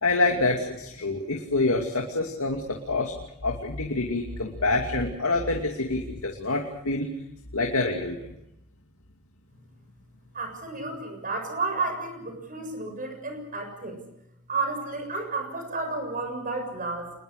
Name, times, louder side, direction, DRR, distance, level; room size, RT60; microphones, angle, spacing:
voice 1, 0.0-3.1 3.4-7.1 7.5-8.3, left 2 dB, 70° left, 2 dB, 2.6 m, -26 dB
voice 2, 10.3-14.0 14.5-17.1, right 3 dB, 40° right, 5 dB, 7.2 m, -31 dB
28.0 x 21.5 x 6.6 m, 0.82 s
head